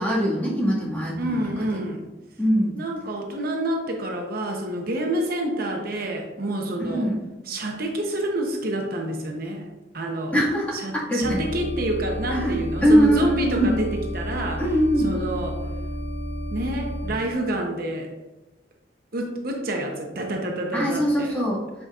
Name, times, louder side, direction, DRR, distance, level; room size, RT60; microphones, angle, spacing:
voice 1, 0.0-1.4 2.4-2.7 6.8-7.2 10.3-10.8 11.1-11.4 12.3-13.7 14.6-15.1 20.7-21.6, equal, 10° left, -7 dB, 1.8 m, -22 dB
voice 2, 1.2-2.1 2.8-7.1 7.5-9.7 9.9-10.3 10.7-15.6 16.5-18.1 19.1-21.3, right 1 dB, 55° right, 1 dB, 0.8 m, -28 dB
sound 1, 11.2-17.1, equal, 75° left, 1.1 m, -31 dB
7.9 x 5.2 x 2.4 m, 1.1 s
head